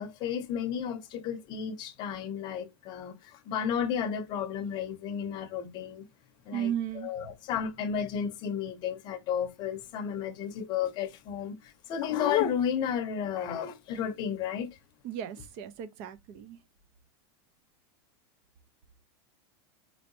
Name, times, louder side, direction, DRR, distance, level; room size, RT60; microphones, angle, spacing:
voice 1, 0.0-6.1 6.4-14.7, left 8 dB, 30° left, 0.7 m, -32 dB
voice 2, 6.5-7.3 15.0-16.6, right 10 dB, 40° right, 0.5 m, -35 dB
4.3 x 2.8 x 2.6 m
supercardioid pair, 165°, 14 cm